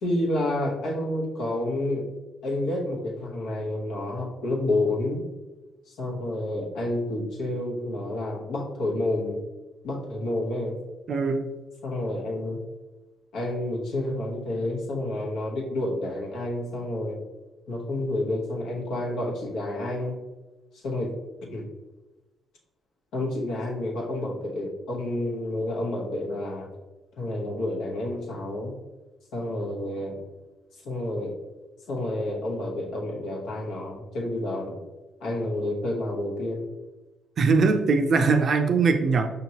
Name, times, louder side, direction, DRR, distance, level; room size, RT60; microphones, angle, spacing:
voice 1, 0.0-2.1 2.4-5.2 5.9-9.4 9.8-10.8 11.8-12.6 13.3-17.2 17.7-20.2 20.7-21.1 21.5-21.7 23.1-26.7 27.2-28.7 29.3-30.2 30.8-31.3 31.9-34.8 35.2-36.7, left 1 dB, 85° left, -2 dB, 1.0 m, -29 dB
voice 2, 11.1-11.4 37.4-39.3, right 4 dB, 55° right, 7 dB, 0.5 m, -21 dB
5.1 x 2.9 x 2.8 m, 1.1 s
cardioid pair, 90°, 0 cm